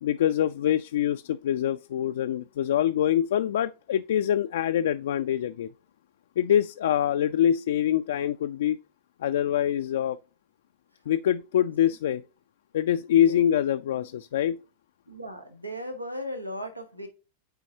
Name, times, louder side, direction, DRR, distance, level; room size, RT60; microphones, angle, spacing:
voice 1, 0.0-5.7 6.4-8.8 9.2-10.2 11.1-12.2 12.7-14.6, left 10 dB, 60° left, 0.3 m, -25 dB
voice 2, 15.1-17.1, equal, 90° right, 1.0 m, -36 dB
9.1 x 4.4 x 2.7 m
figure-of-eight pair, 90°, 0 cm